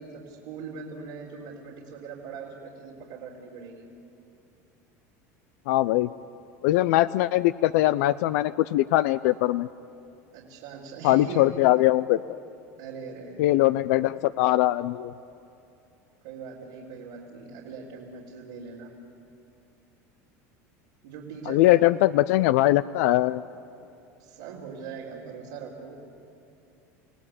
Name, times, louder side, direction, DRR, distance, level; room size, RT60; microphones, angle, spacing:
voice 1, 0.0-3.8 10.3-11.5 12.8-13.6 16.2-18.9 21.0-21.9 24.2-26.0, right 5 dB, 85° right, -6 dB, 3.7 m, -41 dB
voice 2, 5.7-6.1 6.6-9.7 11.0-12.2 13.4-15.1 21.5-23.4, left 16 dB, 75° left, 14 dB, 0.5 m, -21 dB
28.5 x 17.5 x 8.4 m, 2.7 s
supercardioid pair, 100°, 8 cm